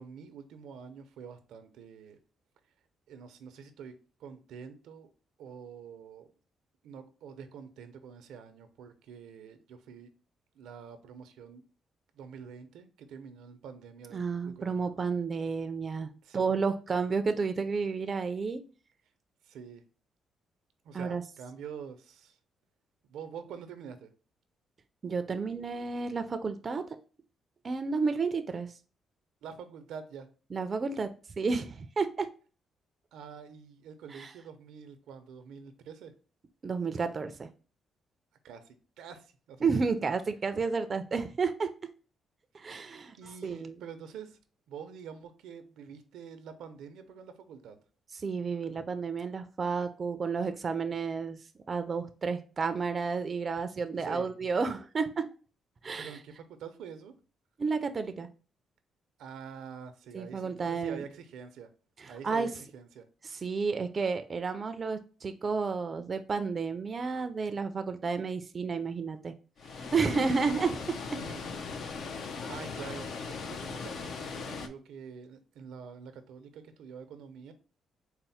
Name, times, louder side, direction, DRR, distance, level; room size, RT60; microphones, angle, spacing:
voice 1, 0.0-2.2 3.1-5.1 5.4-6.3 6.8-10.1 10.5-11.6 12.1-14.7 16.2-16.6 19.4-19.8 20.8-22.4 23.0-24.1 29.4-30.3 33.1-36.1 38.4-39.7 43.2-44.4 44.7-47.8 54.0-54.3 56.0-57.1 59.2-61.7 62.1-63.1 70.0-70.2 71.1-71.4 72.5-77.5, right 7 dB, 90° right, 0.6 m, -46 dB
voice 2, 14.1-18.6 20.9-21.2 25.0-27.0 27.6-28.7 30.5-32.3 34.1-34.3 36.6-37.5 39.6-41.7 42.5-43.2 43.4-43.7 48.2-51.4 51.7-55.3 55.8-56.2 57.6-58.3 60.1-61.0 62.0-62.5 63.2-69.3 69.6-71.2, right 4 dB, 35° right, 0.4 m, -31 dB
Water, 69.6-74.7, left 5 dB, 65° left, 0.5 m, -39 dB
4.2 x 2.1 x 4.1 m
cardioid pair, 105°, 0 cm